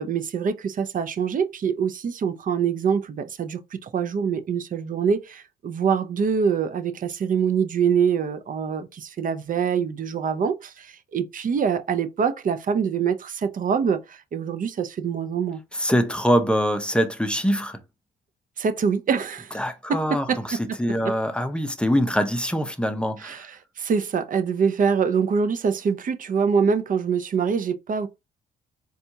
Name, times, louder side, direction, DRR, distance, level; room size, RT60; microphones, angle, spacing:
voice 1, 0.0-15.6 18.6-19.6 19.9-20.4 21.0-21.1 23.2-28.1, right 6 dB, 45° right, 0.5 m, -25 dB
voice 2, 15.7-17.8 19.5-23.4, equal, 5° left, 0.6 m, -24 dB
4.1 x 2.4 x 2.7 m
cardioid pair, 90°, 20 cm